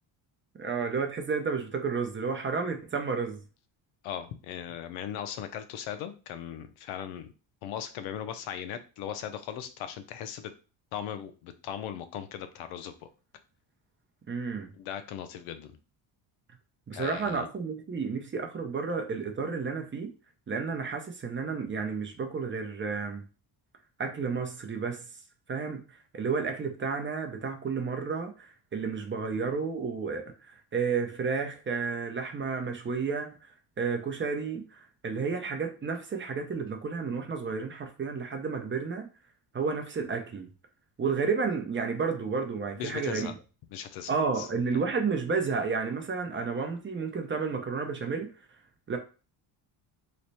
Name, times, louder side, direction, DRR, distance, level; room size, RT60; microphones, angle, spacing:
voice 1, 0.6-3.4 14.3-14.7 16.9-20.1 20.5-23.2 24.0-25.0 25.5-25.8 26.1-39.1 39.5-40.5 41.0-43.3 44.1-48.3 48.9-49.0, right 5 dB, 25° right, 0.6 m, -31 dB
voice 2, 4.0-7.3 7.6-10.5 10.9-12.9 14.7-15.8 16.9-17.5 42.8-43.3 43.7-44.5, left 9 dB, 90° left, 0.7 m, -38 dB
3.2 x 2.1 x 4.0 m
cardioid pair, 115°, 48 cm